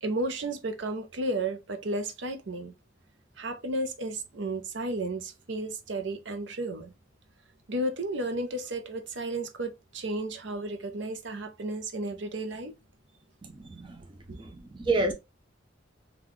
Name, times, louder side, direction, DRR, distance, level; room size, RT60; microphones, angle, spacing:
voice 1, 0.0-2.7 3.4-6.9 7.7-12.7 13.6-13.7, right 2 dB, 65° right, 0.7 m, -33 dB
voice 2, 13.7-14.0 14.4-14.5 14.8-15.1, right 2 dB, 25° right, 0.4 m, -27 dB
3.9 x 2.4 x 3.0 m
head